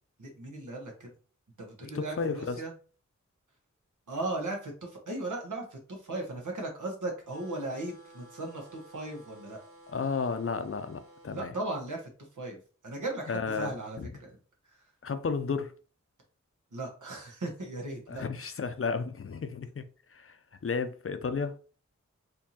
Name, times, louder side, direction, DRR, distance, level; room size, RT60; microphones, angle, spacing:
voice 1, 0.2-1.1 1.6-2.7 4.1-9.6 11.3-14.4 14.7-14.8 16.7-18.2, right 2 dB, 85° right, 1.2 m, -37 dB
voice 2, 1.9-2.6 9.9-11.5 13.3-14.1 15.0-15.7 18.1-19.8 20.1-20.4 20.6-21.5, left 5 dB, 50° left, 0.5 m, -33 dB
sound 1, 7.3-11.4, right 2 dB, 45° right, 1.7 m, -54 dB
4.4 x 2.7 x 2.8 m
wide cardioid pair, 65°, 30 cm